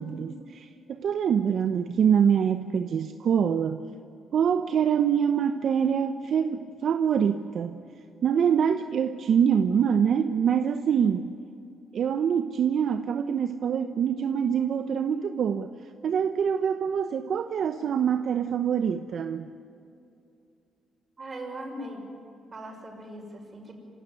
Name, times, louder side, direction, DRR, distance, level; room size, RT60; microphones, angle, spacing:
voice 1, 0.0-3.8 4.3-7.8 8.2-11.3 11.9-15.7 16.0-19.5, right 7 dB, 60° right, 8 dB, 0.9 m, -25 dB
voice 2, 21.2-22.1 22.5-23.7, right 1 dB, 35° right, 2 dB, 6.3 m, -39 dB
26.0 x 17.0 x 9.6 m, 2.7 s
cardioid pair, 90°, 0 cm